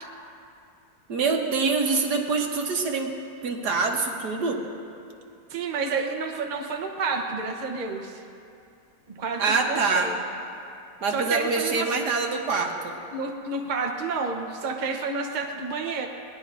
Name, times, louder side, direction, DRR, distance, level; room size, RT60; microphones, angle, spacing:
voice 1, 1.1-3.1 3.4-4.6 9.4-10.1 11.0-13.0, right 4 dB, 65° right, 2 dB, 1.7 m, -25 dB
voice 2, 5.5-8.2 9.1-10.2 11.1-12.0 13.1-16.1, right 4 dB, 35° right, 2 dB, 0.9 m, -30 dB
22.0 x 19.0 x 2.6 m, 2.6 s
omnidirectional pair, 1.9 m